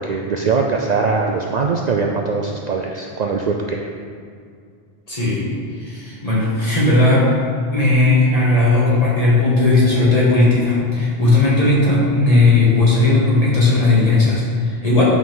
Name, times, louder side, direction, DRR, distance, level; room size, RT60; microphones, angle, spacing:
voice 1, 0.0-3.9, right 4 dB, 55° right, 1 dB, 0.5 m, -21 dB
voice 2, 5.1-5.5 5.8-7.3 7.7-15.0, left 2 dB, 35° left, -7 dB, 2.1 m, -16 dB
8.5 x 5.5 x 3.8 m, 2.2 s
omnidirectional pair, 1.1 m